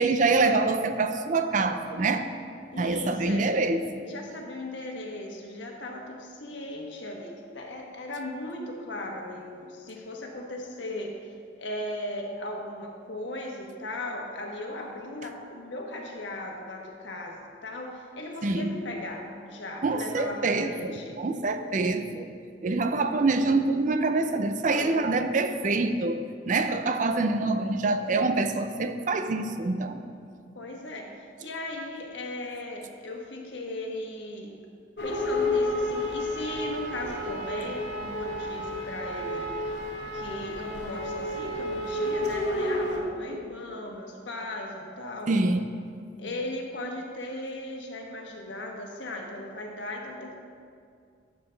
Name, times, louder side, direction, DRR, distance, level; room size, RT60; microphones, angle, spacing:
voice 1, 0.0-2.3 2.8-4.1 18.4-18.7 19.8-22.3 22.6-26.2 26.5-30.0 45.3-45.7, right 3 dB, 45° right, 8 dB, 0.5 m, -25 dB
voice 2, 2.7-3.5 4.0-11.3 11.6-21.2 24.6-25.0 30.5-34.6 35.0-39.8 40.1-45.4 46.2-50.3, left 1 dB, 90° left, 1 dB, 1.2 m, -37 dB
sound 1, 35.0-43.0, left 1 dB, 70° left, 1.0 m, -31 dB
12.0 x 6.6 x 3.4 m, 2.3 s
head